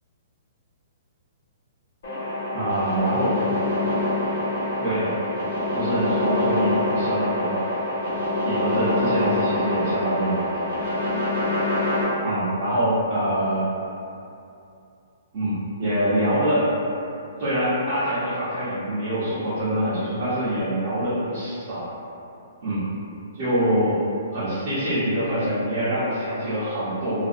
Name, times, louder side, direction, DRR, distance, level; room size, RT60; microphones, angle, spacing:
sound 1, 2.0-12.0, left 1 dB, 65° left, 0.9 m, -25 dB
voice 1, 2.5-3.4 4.8-5.1 5.7-7.6 8.4-10.4 12.2-13.7 15.3-16.7 17.4-21.9 22.6-22.8 23.3-23.9 24.3-27.3, equal, 30° right, -14 dB, 0.6 m, -25 dB
2.4 x 2.0 x 2.5 m, 2.7 s
hypercardioid pair, 180°, 0 cm